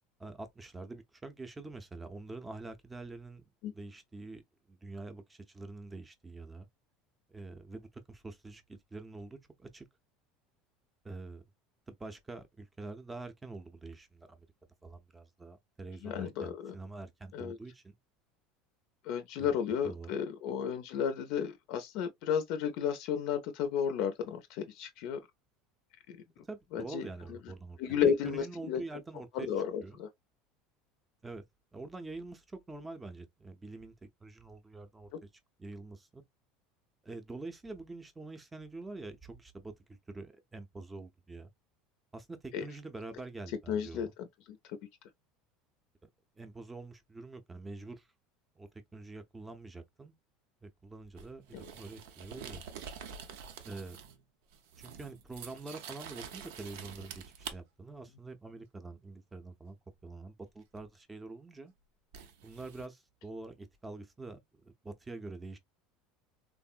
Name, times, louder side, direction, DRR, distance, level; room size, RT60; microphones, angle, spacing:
voice 1, 0.2-4.4 4.7-6.7 7.3-9.9 11.0-11.4 11.9-14.5 14.8-17.9 19.4-19.5 19.8-20.2 26.5-28.0 28.2-29.5 29.8-30.0 31.2-31.4 31.7-33.9 34.2-35.1 35.6-36.2 37.0-41.5 42.1-44.1 46.4-48.1 48.6-50.2 50.6-52.6 53.6-54.0 54.8-59.8 60.0-61.7 62.4-65.6, right 3 dB, 10° right, 0.5 m, -46 dB
voice 2, 16.0-16.7 17.3-17.6 19.0-25.2 26.7-27.0 27.3-27.4 27.8-28.8 29.3-30.1 42.5-42.6 43.7-44.1 44.7-44.8 51.5-51.6, left 8 dB, 60° left, 0.5 m, -33 dB
sound 1, 51.2-54.2 54.5-57.6 60.8-60.9 62.1-62.9, right 7 dB, 80° right, 0.6 m, -47 dB
3.5 x 2.0 x 2.4 m
supercardioid pair, 140°, 0 cm